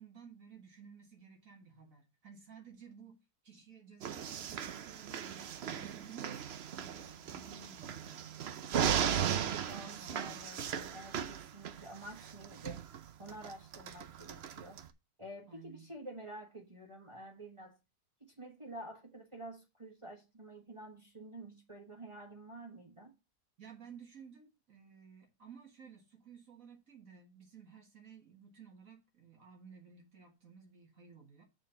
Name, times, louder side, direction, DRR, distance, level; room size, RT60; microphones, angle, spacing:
voice 1, 0.0-8.4 8.8-10.5 15.5-15.9 23.6-31.4, right 6 dB, 50° right, 1.9 m, -55 dB
sound 1, 4.0-14.9, right 8 dB, 80° right, 0.5 m, -37 dB
voice 2, 8.7-12.8 13.2-14.8 15.2-17.8 18.2-23.1, right 1 dB, 20° right, 1.2 m, -49 dB
6.8 x 4.4 x 6.7 m
omnidirectional pair, 1.9 m